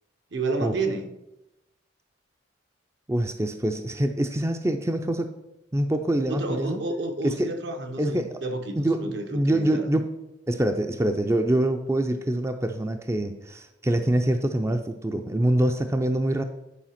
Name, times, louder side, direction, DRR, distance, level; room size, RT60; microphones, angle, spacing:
voice 1, 0.3-1.2 6.3-9.9, right 2 dB, 65° right, 5 dB, 1.1 m, -30 dB
voice 2, 3.1-5.3 5.7-6.8 7.2-7.5 8.0-8.4 8.8-10.1 10.5-16.4, right 1 dB, 15° right, 6 dB, 0.5 m, -25 dB
9.9 x 4.8 x 5.8 m, 0.92 s
head